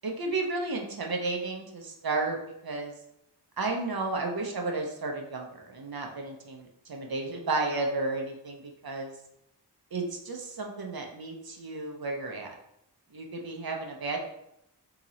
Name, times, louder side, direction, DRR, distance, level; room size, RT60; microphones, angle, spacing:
voice 1, 0.0-2.4 2.6-2.9 3.6-9.1 9.9-12.5 13.1-14.2, right 3 dB, 60° right, 1 dB, 0.7 m, -33 dB
2.9 x 2.9 x 3.9 m, 0.80 s
wide cardioid pair, 55°, 42 cm